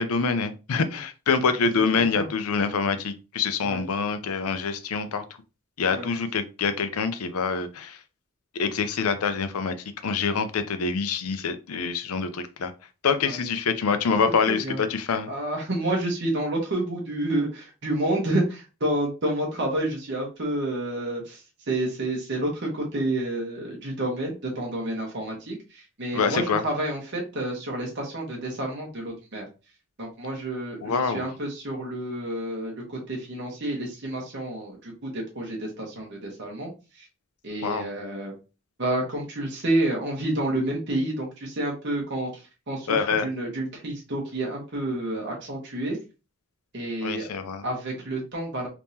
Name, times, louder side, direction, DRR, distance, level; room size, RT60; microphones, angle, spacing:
voice 1, 0.0-5.2 5.8-8.0 8.5-9.8 10.0-12.7 13.0-15.3 26.1-26.6 30.8-31.3 37.6-37.9 42.9-43.3 47.0-47.6, left 5 dB, 85° left, 10 dB, 0.5 m, -25 dB
voice 2, 14.5-14.8 15.3-21.4 21.7-29.5 30.0-32.7 33.1-36.7 37.0-37.1 37.4-38.3 38.8-42.3 42.7-46.0 46.7-47.3 47.6-48.7, right 1 dB, 55° right, -1 dB, 1.1 m, -29 dB
3.5 x 3.0 x 2.7 m, 0.31 s
head